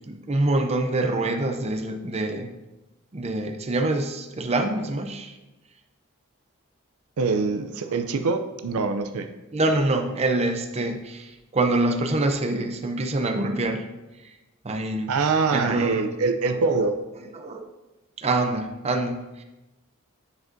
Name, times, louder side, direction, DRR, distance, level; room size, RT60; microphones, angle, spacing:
voice 1, 0.1-2.5 3.1-5.4 9.5-13.9 14.2-14.3 14.6-15.1 15.5-16.0 16.4-16.6 17.3-17.7 18.2-19.4, right 2 dB, 30° right, 5 dB, 0.5 m, -25 dB
voice 2, 7.2-9.3 15.1-16.9, right 4 dB, 75° right, 7 dB, 0.5 m, -24 dB
9.7 x 5.0 x 2.6 m, 1.0 s
head